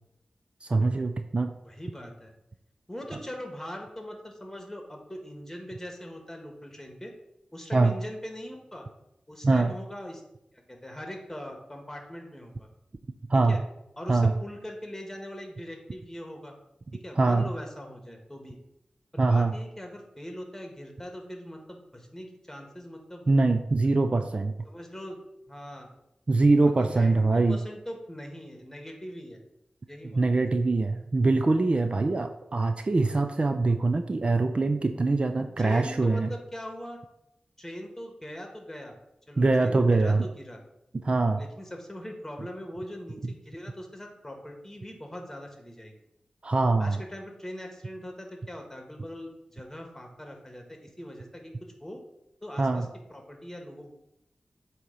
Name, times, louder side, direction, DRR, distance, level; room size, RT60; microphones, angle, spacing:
voice 1, 0.6-1.5 7.7-7.9 9.4-9.7 13.3-13.6 14.1-14.3 17.2-17.5 19.2-19.5 23.3-24.5 26.3-27.6 30.0-36.3 39.4-40.3 40.9-41.4 46.4-47.0 52.6-52.9, right 3 dB, 45° right, 7 dB, 0.5 m, -23 dB
voice 2, 1.6-2.3 2.9-7.1 7.5-8.8 9.3-10.2 10.5-12.7 13.3-13.6 14.0-16.5 16.9-18.6 19.1-23.2 24.6-25.2 25.5-25.9 26.6-29.4 29.9-30.3 35.4-37.0 37.6-38.9 39.3-40.6 41.4-45.9 46.8-52.0 52.4-53.9, equal, 15° left, 3 dB, 1.5 m, -41 dB
7.9 x 3.0 x 5.3 m, 0.83 s
wide cardioid pair, 60°, 3 cm